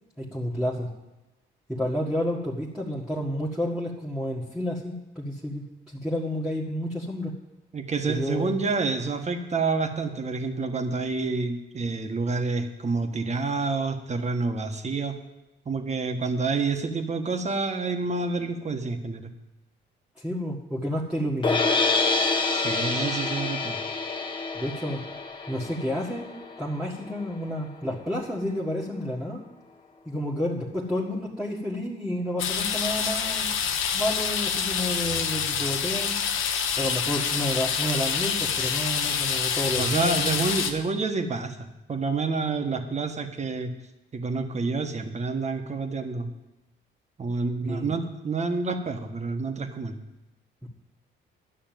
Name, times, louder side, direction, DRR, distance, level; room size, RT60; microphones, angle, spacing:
voice 1, 0.2-0.9 1.7-7.3 8.1-8.6 20.2-21.7 24.5-25.0 25.5-26.3 26.6-29.4 30.0-33.5 33.9-36.2 36.8-40.4 47.6-47.9 50.6-50.7, equal, 5° right, -6 dB, 1.7 m, -30 dB
voice 2, 7.7-15.1 15.6-19.3 22.5-23.8 39.7-43.7 44.1-46.3 47.2-49.9, right 4 dB, 35° right, 6 dB, 1.4 m, -28 dB
sound 1, 21.4-27.6, left 3 dB, 25° left, 1.4 m, -27 dB
sound 2, 32.4-40.7, left 7 dB, 80° left, 1.2 m, -27 dB
11.5 x 6.4 x 9.2 m, 0.98 s
cardioid pair, 90°, 20 cm